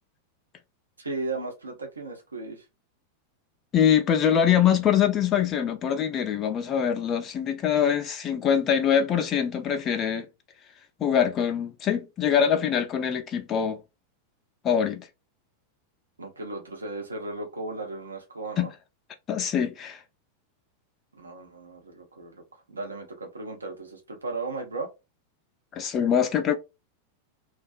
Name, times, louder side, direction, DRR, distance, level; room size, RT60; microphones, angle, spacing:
voice 1, 1.0-2.6 16.2-18.7 21.1-24.9, right 3 dB, 75° right, 0.6 m, -36 dB
voice 2, 3.7-10.3 11.0-13.8 14.6-15.1 18.6-18.7 19.3-20.0 25.7-26.6, left 8 dB, 30° left, 0.3 m, -24 dB
2.4 x 2.2 x 2.4 m
figure-of-eight pair, 90°, 0 cm